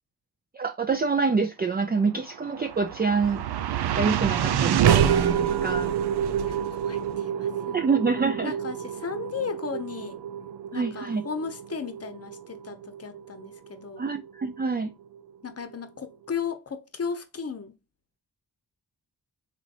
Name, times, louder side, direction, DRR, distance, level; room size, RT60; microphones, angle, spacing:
voice 1, 0.5-5.9 7.7-8.5 10.7-11.2 14.0-14.9, right 4 dB, 25° right, 0.4 m, -26 dB
sound 1, 2.3-14.6, right 9 dB, 80° right, 0.5 m, -27 dB
voice 2, 6.4-7.8 8.4-10.2 10.7-14.0 15.4-17.8, left 6 dB, 40° left, 0.8 m, -35 dB
4.0 x 3.0 x 2.4 m
cardioid pair, 65°, 38 cm